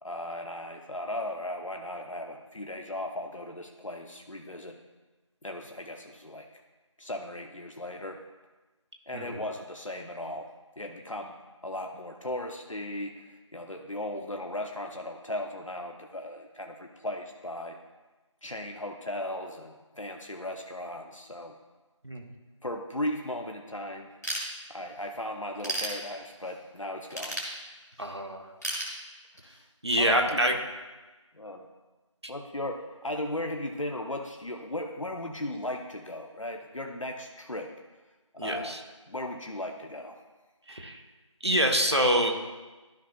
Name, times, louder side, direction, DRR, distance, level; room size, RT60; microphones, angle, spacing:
voice 1, 0.0-4.8 5.4-6.5 7.0-8.2 9.1-11.4 11.6-17.8 18.4-21.5 22.6-24.1 24.7-27.4 30.0-30.4 31.3-31.7 32.3-37.7 38.3-38.8 39.1-40.2, left 1 dB, 75° left, 3 dB, 0.8 m, -37 dB
Ratchet pawl / Tools, 24.2-25.0 25.4-26.5 27.1-28.1 28.6-29.6, right 1 dB, 30° left, 1.6 m, -34 dB
voice 2, 28.0-28.5 29.8-30.5 38.4-38.8 40.7-41.0 41.4-42.4, equal, 55° right, 2 dB, 1.1 m, -26 dB
13.0 x 5.5 x 2.4 m, 1.2 s
figure-of-eight pair, 180°, 17 cm